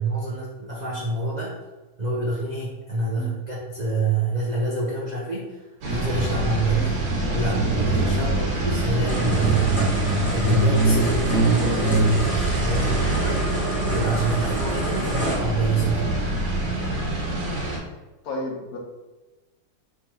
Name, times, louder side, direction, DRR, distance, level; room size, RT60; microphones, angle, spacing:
voice 1, 0.0-1.6 2.0-6.9 7.3-10.0 10.3-13.5 13.9-16.2, right 3 dB, 65° right, -4 dB, 0.4 m, -27 dB
sound 1, 5.8-17.8, right 2 dB, 85° right, 1.7 m, -23 dB
voice 2, 8.1-8.5 18.2-18.8, left 2 dB, 65° left, 0 dB, 1.3 m, -33 dB
sound 2, 9.1-15.3, right 1 dB, 5° right, 0.9 m, -32 dB
3.5 x 3.0 x 4.3 m, 1.1 s
omnidirectional pair, 1.7 m